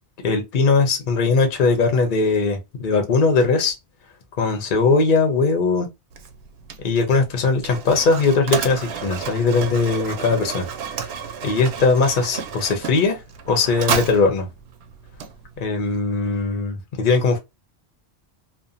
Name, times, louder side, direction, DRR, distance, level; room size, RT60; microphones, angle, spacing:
voice 1, 0.2-3.7 4.4-5.9 6.8-10.7 11.4-13.2 13.5-14.5 15.6-17.4, left 4 dB, 55° left, 0.7 m, -20 dB
Mechanisms, 6.1-15.8, right 7 dB, 75° right, 0.8 m, -31 dB
2.5 x 2.1 x 2.5 m
omnidirectional pair, 1.2 m